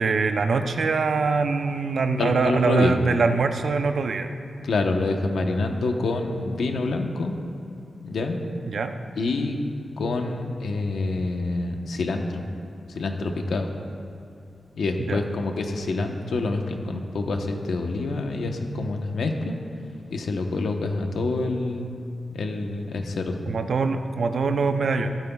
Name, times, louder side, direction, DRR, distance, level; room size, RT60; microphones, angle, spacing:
voice 1, 0.0-4.4 8.7-9.0 15.0-15.2 23.5-25.1, right 4 dB, 60° right, 7 dB, 0.6 m, -23 dB
voice 2, 2.2-2.9 4.6-7.3 8.0-8.4 9.2-9.6 10.0-12.4 13.0-13.7 14.7-19.6 20.1-22.0 22.3-23.4, left 3 dB, 90° left, 3 dB, 1.0 m, -27 dB
16.0 x 12.5 x 2.4 m, 2.5 s
wide cardioid pair, 180°, 0 cm